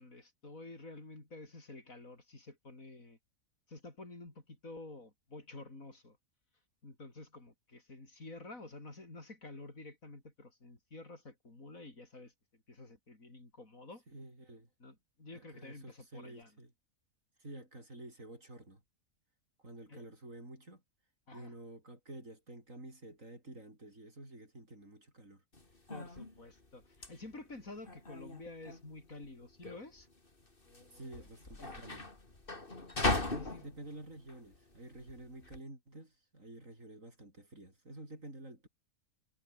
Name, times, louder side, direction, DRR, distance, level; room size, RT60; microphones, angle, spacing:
voice 1, 0.0-3.2 3.7-6.2 6.8-14.0 14.8-16.5 19.9-20.0 21.3-21.5 25.9-30.1 30.7-31.3 31.6-31.9 33.3-33.7, left 2 dB, 70° left, 5.3 m, -50 dB
voice 2, 14.1-14.7 15.3-16.7 17.4-18.8 19.6-20.8 21.3-25.4 30.9-32.1 33.0-38.7, right 1 dB, 65° right, 8.0 m, -50 dB
sound 1, 25.5-35.6, left 2 dB, 40° left, 3.4 m, -39 dB
omnidirectional pair, 1.5 m